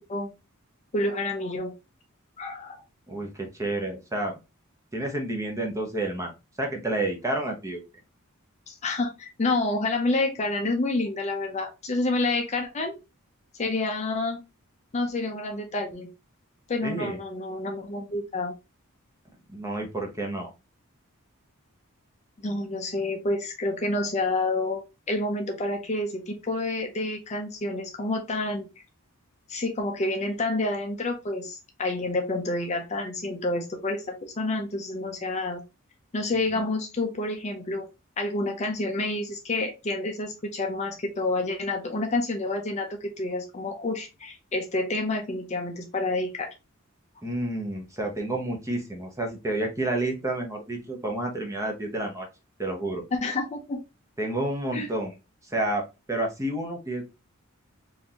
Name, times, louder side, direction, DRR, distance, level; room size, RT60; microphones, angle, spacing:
voice 1, 0.9-1.7 2.4-2.8 8.7-13.0 13.6-14.4 14.9-16.1 16.7-18.5 22.4-24.8 25.1-28.7 29.5-35.6 36.1-37.9 38.2-46.5 53.1-53.8 54.7-54.9, left 2 dB, 30° left, 4 dB, 0.5 m, -28 dB
voice 2, 3.1-4.3 4.9-6.3 6.6-7.8 16.8-17.2 19.5-20.5 47.2-52.3 52.6-53.0 54.2-55.1 55.4-55.8 56.1-57.0, right 1 dB, 15° right, 2 dB, 0.8 m, -30 dB
3.9 x 2.6 x 2.8 m, 0.27 s
head